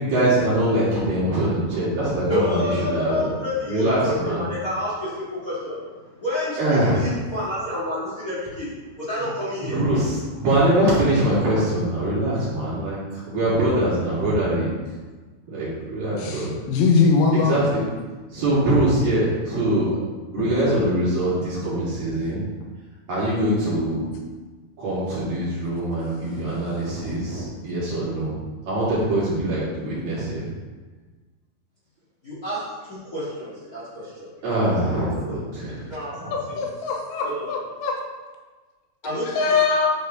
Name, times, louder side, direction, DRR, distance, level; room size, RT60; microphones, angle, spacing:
voice 1, 0.0-3.3 3.7-4.5 6.6-7.1 9.2-9.3 9.6-14.7 15.5-16.5 17.3-17.8 18.3-19.9 20.3-22.5 23.1-24.1 24.8-28.4 28.7-30.5 34.4-35.9 36.2-36.4, right 1 dB, 50° right, -10 dB, 4.2 m, -23 dB
voice 2, 2.3-4.1 4.4-5.8 6.2-8.7 8.9-9.8 32.2-32.6 32.8-34.3 35.9-36.7 37.2-37.5 39.0-39.2, left 1 dB, 55° left, -10 dB, 0.9 m, -29 dB
voice 3, 16.2-17.7 36.3-38.0 39.4-39.9, left 4 dB, 80° left, 1 dB, 3.3 m, -21 dB
11.0 x 4.7 x 3.9 m, 1.3 s
omnidirectional pair, 5.7 m